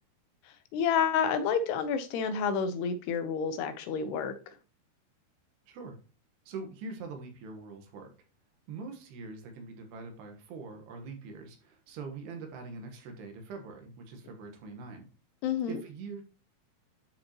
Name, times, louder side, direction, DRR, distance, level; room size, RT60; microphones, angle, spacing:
voice 1, 0.7-4.4 15.4-15.8, left 6 dB, 85° left, 2.9 m, -29 dB
voice 2, 5.7-6.0 6.5-8.1 8.7-15.1 15.7-16.2, right 4 dB, 80° right, 3.4 m, -43 dB
11.0 x 5.2 x 3.0 m
omnidirectional pair, 4.7 m